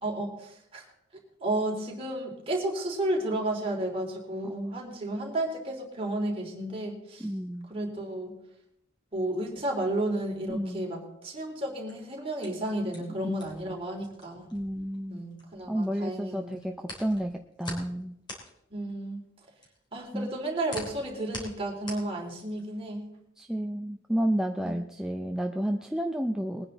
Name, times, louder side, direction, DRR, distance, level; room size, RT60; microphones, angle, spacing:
voice 1, 0.0-0.8 1.4-7.3 7.7-8.3 9.1-14.4 15.1-16.5 18.7-19.2 19.9-23.1 24.6-24.7, right 1 dB, 30° right, -1 dB, 3.5 m, -32 dB
voice 2, 4.4-4.8 7.2-7.7 10.5-10.8 13.2-13.3 13.7-13.8 14.5-15.2 15.7-18.1 20.1-20.4 23.4-26.7, equal, 5° right, 3 dB, 0.6 m, -31 dB
sound 1, 11.7-15.9 16.2-22.7, left 1 dB, 25° left, 3.6 m, -44 dB
21.5 x 9.8 x 4.0 m, 0.79 s
head